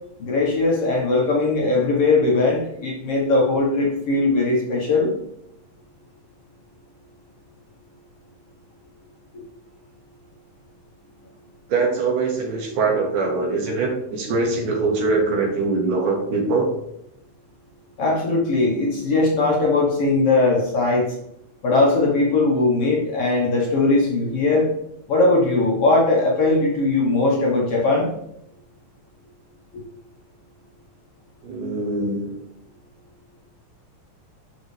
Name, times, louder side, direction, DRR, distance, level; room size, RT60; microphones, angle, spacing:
voice 1, 0.2-5.1 18.0-21.1 21.6-24.7 25.1-28.1, left 2 dB, 55° left, -3 dB, 1.9 m, -19 dB
voice 2, 11.7-16.7 31.4-32.3, right 3 dB, 75° right, 0 dB, 3.0 m, -22 dB
11.5 x 4.0 x 3.3 m, 0.78 s
omnidirectional pair, 3.7 m